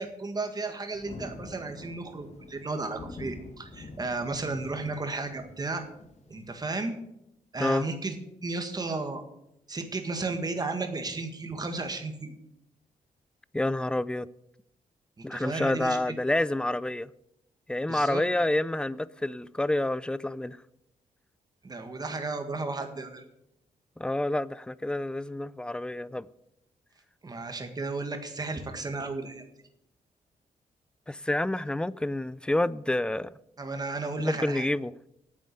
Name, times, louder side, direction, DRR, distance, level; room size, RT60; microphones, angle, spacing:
voice 1, 0.0-5.8 6.3-7.0 7.5-8.1 8.4-9.2 9.7-12.3 15.2-16.0 17.9-18.2 21.6-23.2 27.2-29.5 33.6-34.7, right 3 dB, 25° right, 1.7 m, -34 dB
Thunder, 0.9-6.7, left 2 dB, 50° left, 1.4 m, -46 dB
voice 2, 13.5-14.3 15.2-17.1 17.7-20.6 24.0-26.3 31.1-33.3 34.2-34.9, left 1 dB, 5° left, 0.3 m, -28 dB
9.4 x 7.5 x 8.7 m
cardioid pair, 120°, 15 cm